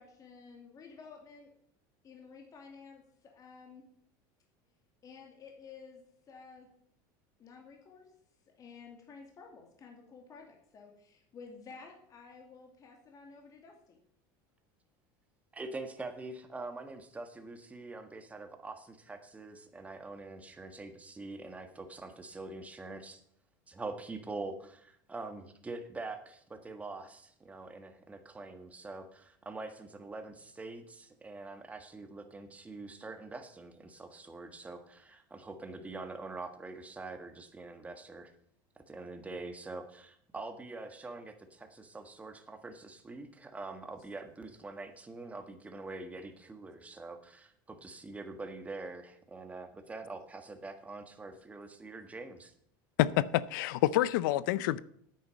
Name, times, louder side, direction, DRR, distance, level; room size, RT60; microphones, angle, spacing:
voice 1, 0.0-1.5 2.0-3.8 5.0-6.7 7.4-8.1 8.5-14.0, left 5 dB, 35° left, 2.5 m, -52 dB
voice 2, 15.5-23.2 23.7-38.3 38.9-52.5, right 3 dB, 15° right, 1.6 m, -44 dB
voice 3, 53.0-54.8, left 14 dB, 80° left, 0.5 m, -27 dB
9.5 x 9.3 x 5.3 m
supercardioid pair, 125°, 10 cm